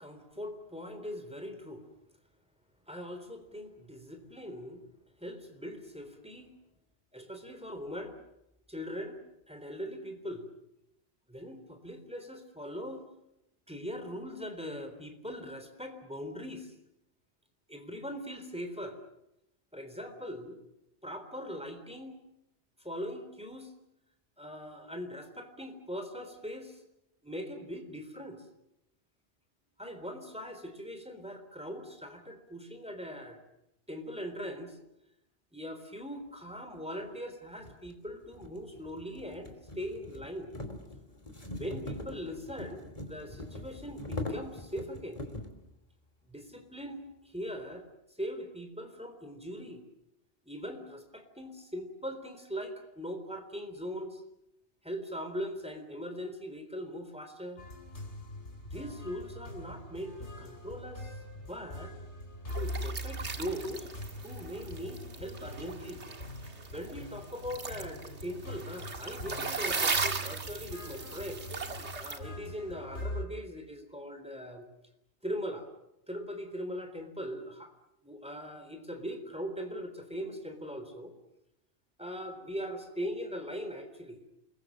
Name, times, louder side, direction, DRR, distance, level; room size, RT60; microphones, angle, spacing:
voice 1, 0.0-1.8 2.9-4.8 5.2-6.5 7.1-8.2 8.7-9.2 9.5-10.5 11.3-13.0 13.7-16.7 17.7-19.0 19.7-20.6 21.0-22.2 22.8-23.7 24.4-26.8 27.2-28.4 29.8-33.4 33.9-34.8 35.5-40.5 41.5-45.2 46.3-47.8 48.2-49.8 50.4-54.2 54.8-57.6 58.6-61.9 62.5-63.9 64.2-66.0 66.4-71.4 71.9-74.7 75.2-75.7 76.1-77.7 78.0-81.1 82.0-84.3, equal, 5° right, 5 dB, 3.7 m, -41 dB
sound 1, 36.8-36.9 37.6-45.6, left 2 dB, 30° left, 3.1 m, -42 dB
sound 2, 57.6-73.2, left 1 dB, 85° left, 3.6 m, -43 dB
sound 3, 62.5-72.2, right 4 dB, 85° right, 2.1 m, -38 dB
28.5 x 21.5 x 7.6 m, 0.86 s
omnidirectional pair, 1.1 m